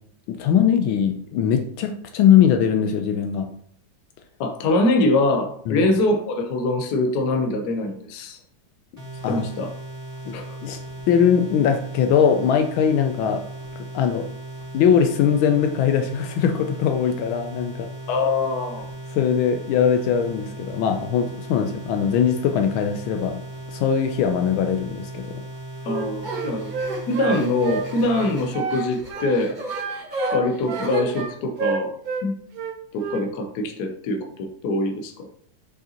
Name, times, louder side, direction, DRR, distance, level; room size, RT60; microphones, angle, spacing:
voice 1, 0.3-3.5 5.7-5.9 9.2-9.4 10.3-10.4 10.6-10.8 11.1-13.5 13.9-14.2 14.7-17.9 19.1-23.4 23.7-25.4 26.5-26.6, left 8 dB, 80° left, 6 dB, 1.3 m, -21 dB
voice 2, 4.4-8.4 9.3-9.7 10.3-10.6 18.1-18.8 25.9-26.7 27.1-29.6 30.3-31.9 32.2-32.4 32.9-35.3, left 2 dB, 60° left, 5 dB, 1.2 m, -23 dB
sound 1, 9.0-28.6, right 1 dB, 10° right, 2.3 m, -37 dB
Wind instrument woodwind instrument, 25.8-28.8 29.1-29.4 29.7-32.3 32.5-33.3, right 5 dB, 65° right, 0.9 m, -29 dB
sound 2, 26.2-31.2, right 2 dB, 25° right, 1.4 m, -34 dB
6.6 x 5.3 x 2.8 m, 0.63 s
omnidirectional pair, 2.3 m